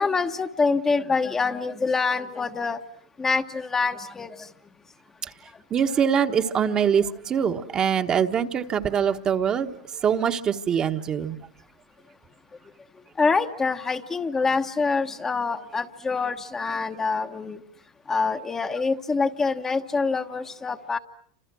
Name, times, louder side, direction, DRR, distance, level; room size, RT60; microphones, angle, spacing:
voice 1, 0.0-2.8 3.2-4.5 13.2-17.6 18.1-21.0, left 4 dB, 15° left, 6 dB, 1.1 m, -25 dB
voice 2, 5.7-9.7 10.0-11.4, right 7 dB, 30° right, 6 dB, 1.3 m, -23 dB
28.5 x 26.5 x 6.2 m, 0.63 s
supercardioid pair, 120°, 3 cm